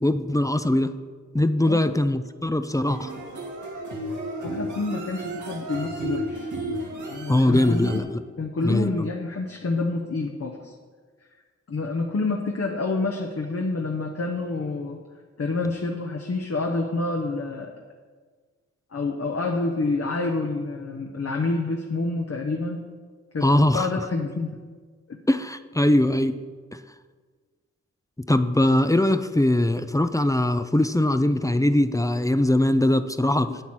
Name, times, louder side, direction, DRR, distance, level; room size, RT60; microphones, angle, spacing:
voice 1, 0.0-1.0 1.3-3.1 7.3-8.0 8.6-9.1 23.4-23.9 25.3-26.4 26.7-26.8 28.3-33.5, left 1 dB, 10° left, 10 dB, 0.6 m, -21 dB
sound 1, 2.9-8.0, right 1 dB, 80° right, 2.0 m, -33 dB
voice 2, 4.4-6.5 7.0-10.7 11.7-15.0 15.4-17.7 18.9-22.8 23.3-23.5 23.7-24.5 25.1-25.2 33.5-33.6, left 3 dB, 55° left, 1 dB, 1.1 m, -28 dB
8.5 x 8.2 x 6.1 m, 1.5 s
cardioid pair, 50°, 29 cm